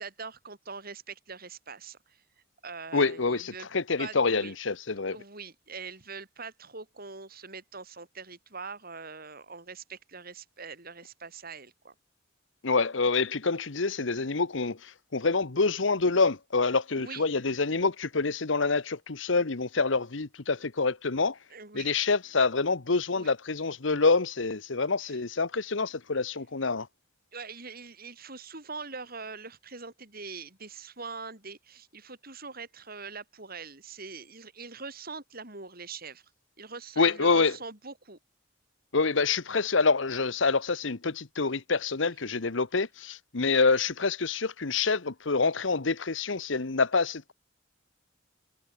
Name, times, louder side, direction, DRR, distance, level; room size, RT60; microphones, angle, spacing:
voice 1, 0.0-2.2 2.6-3.7 4.0-4.5 5.1-11.9 16.9-17.2 20.6-20.7 21.5-21.9 23.1-23.3 25.0-25.2 27.3-36.3 36.6-38.2, right 4 dB, 50° right, 6.6 m, -43 dB
voice 2, 2.9-5.2 12.6-21.4 21.7-26.9 37.0-37.6 38.9-47.3, left 4 dB, 70° left, 1.1 m, -27 dB
head